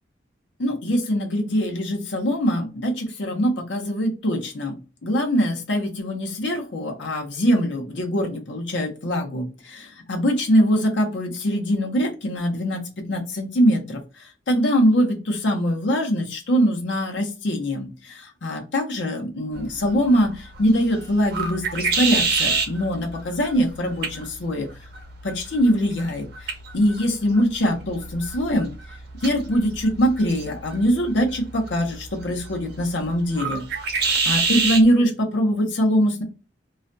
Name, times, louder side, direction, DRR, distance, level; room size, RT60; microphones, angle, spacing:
voice 1, 0.6-4.8 5.0-14.0 14.5-24.7 25.2-28.7 29.2-33.6 33.9-36.2, equal, 85° left, 2 dB, 0.7 m, -23 dB
sound 1, 19.5-34.9, right 4 dB, 60° right, 0.7 m, -29 dB
2.4 x 2.2 x 2.5 m, 0.32 s
head